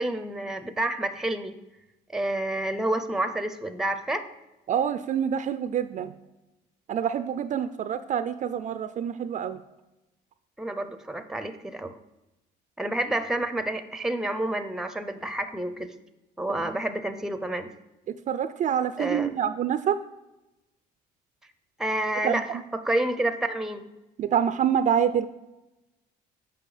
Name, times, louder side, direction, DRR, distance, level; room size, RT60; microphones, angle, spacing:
voice 1, 0.0-1.5 2.1-4.3 10.6-12.0 12.8-15.9 16.4-17.7 19.0-19.3 21.8-22.5 22.7-23.8, right 1 dB, 5° right, 10 dB, 0.6 m, -29 dB
voice 2, 4.7-6.1 6.9-9.6 16.5-16.7 18.3-20.0 22.2-22.6 24.2-25.3, right 8 dB, 45° right, 11 dB, 0.4 m, -26 dB
7.6 x 5.5 x 4.9 m, 1.0 s
cardioid pair, 110°, 17 cm